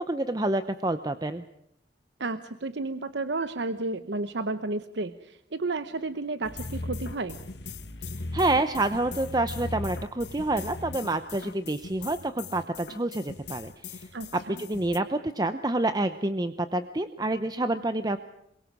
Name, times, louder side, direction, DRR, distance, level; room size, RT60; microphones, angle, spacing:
voice 1, 0.0-1.4 8.3-14.1 14.5-18.2, right 2 dB, 20° right, 10 dB, 0.8 m, -28 dB
voice 2, 2.2-7.4 14.1-14.6, right 3 dB, 70° right, 11 dB, 0.9 m, -32 dB
sound 1, 6.4-15.0, left 2 dB, 65° left, 1.4 m, -38 dB
27.0 x 23.0 x 6.2 m, 0.79 s
head